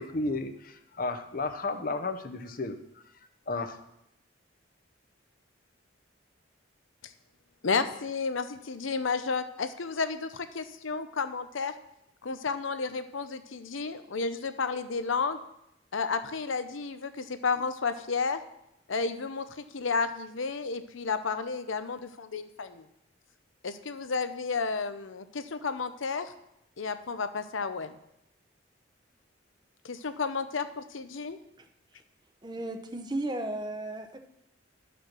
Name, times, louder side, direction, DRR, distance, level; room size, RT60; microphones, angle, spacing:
voice 1, 0.0-2.8 3.5-3.8, left 3 dB, 45° left, 8 dB, 0.7 m, -33 dB
voice 2, 7.6-11.7 12.2-15.4 15.9-18.4 18.9-22.8 23.6-26.3 26.8-27.9 29.8-31.4, left 4 dB, 80° left, 11 dB, 0.7 m, -32 dB
voice 3, 32.4-34.2, right 1 dB, 20° right, 6 dB, 0.8 m, -34 dB
12.0 x 5.1 x 6.0 m, 0.81 s
head